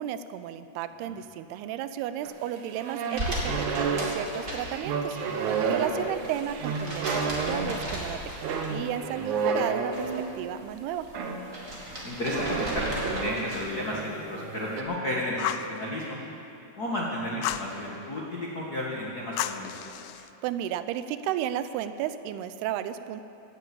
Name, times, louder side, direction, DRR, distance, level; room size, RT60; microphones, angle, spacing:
voice 1, 0.0-11.1 20.2-23.2, right 11 dB, 85° right, 12 dB, 2.5 m, -34 dB
sound 1, 2.2-10.4 11.1-11.5 12.3-13.4 13.8-14.8, right 5 dB, 70° right, 1.9 m, -31 dB
sound 2, 3.1-5.2 5.5-9.0 9.3-10.2 10.6-13.8, right 1 dB, 25° right, 2.1 m, -36 dB
voice 2, 12.0-16.2 16.8-19.7, left 1 dB, 60° left, -4 dB, 0.9 m, -32 dB
Fire, 15.4-15.7 17.4-17.7 19.4-20.3, left 13 dB, 85° left, 2.1 m, -32 dB
16.5 x 9.2 x 8.6 m, 2.9 s
omnidirectional pair, 4.7 m